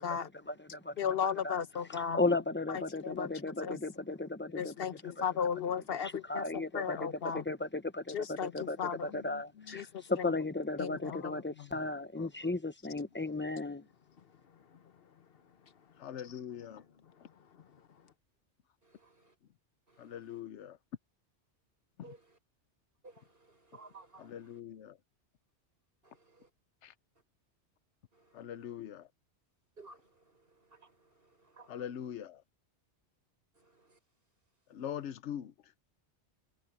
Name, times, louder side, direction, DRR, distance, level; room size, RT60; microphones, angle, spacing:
voice 1, 0.0-0.9 1.4-1.6 1.9-5.2 5.9-13.9, left 2 dB, 10° left, 0.8 m, -36 dB
voice 2, 1.0-2.2 2.7-3.3 3.6-3.8 4.6-7.4 8.1-9.1 9.7-10.3 10.8-11.2, left 7 dB, 60° left, 1.1 m, -35 dB
voice 3, 4.5-5.0 9.1-9.9 11.1-11.7 12.2-12.3 16.0-16.8 20.0-20.8 24.3-25.0 26.8-26.9 28.3-29.1 31.7-32.4 34.7-35.5, left 9 dB, 85° left, 1.1 m, -43 dB
voice 4, 18.8-19.4 19.9-20.4 22.0-22.4 23.0-24.6 26.0-26.5 27.1-27.2 28.1-28.7 29.8-32.1 33.5-34.0, right 3 dB, 55° right, 6.3 m, -58 dB
omnidirectional pair, 1.2 m